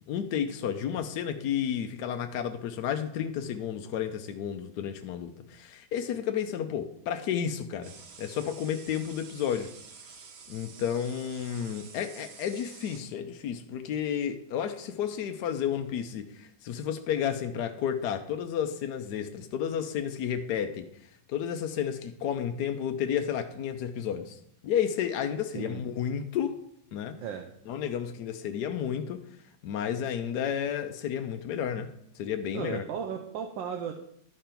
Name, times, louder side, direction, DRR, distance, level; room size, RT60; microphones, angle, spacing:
voice 1, 0.1-7.9 8.2-9.7 10.5-20.8 21.3-24.4 24.6-26.6 26.9-27.2 27.7-29.2 29.6-32.8, left 8 dB, 70° left, 6 dB, 1.1 m, -31 dB
sound 1, 7.8-13.0, right 5 dB, 55° right, 0.7 m, -49 dB
voice 2, 25.5-25.8 27.2-27.5 32.5-33.9, right 7 dB, 80° right, 4 dB, 1.4 m, -35 dB
11.5 x 5.2 x 4.4 m, 0.72 s
omnidirectional pair, 2.1 m